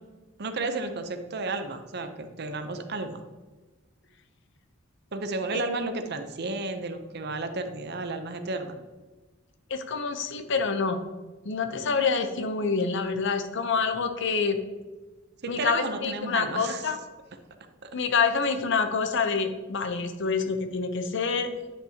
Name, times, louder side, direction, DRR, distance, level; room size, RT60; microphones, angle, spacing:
voice 1, 0.4-3.2 5.1-8.8 15.4-16.9 17.8-17.9, right 3 dB, 55° right, 8 dB, 0.7 m, -32 dB
voice 2, 9.7-11.0 11.4-14.6 15.5-17.0 17.9-21.5, left 5 dB, 60° left, 8 dB, 0.7 m, -27 dB
9.9 x 5.9 x 2.9 m, 1.2 s
head